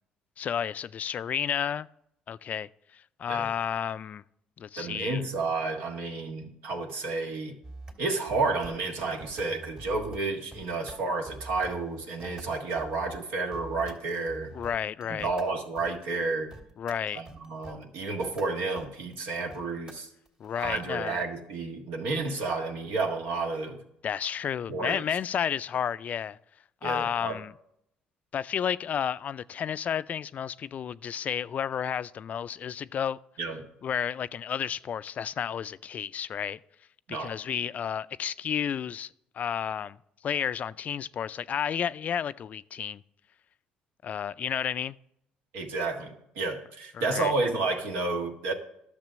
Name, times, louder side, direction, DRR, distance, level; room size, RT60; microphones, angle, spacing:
voice 1, 0.4-1.9 2.3-4.2 4.6-5.2 14.5-15.3 16.8-17.2 20.4-21.2 24.0-26.4 26.8-27.5 28.3-33.2 33.8-36.6 37.1-40.0 40.2-43.0 44.0-45.0 46.9-47.3, left 8 dB, 50° left, 0.3 m, -31 dB
voice 2, 4.8-7.6 8.0-14.5 15.1-16.5 17.1-20.1 20.6-23.8 24.7-25.0 26.8-27.4 33.4-33.6 37.1-37.3 45.5-48.5, right 3 dB, 75° right, 1.5 m, -31 dB
sound 1, 7.6-7.9 8.3-8.8 9.2-10.2 10.5-13.2 13.5-13.9 14.3-20.8, right 2 dB, 35° right, 2.6 m, -45 dB
10.5 x 6.7 x 6.2 m
hypercardioid pair, 65°, 3 cm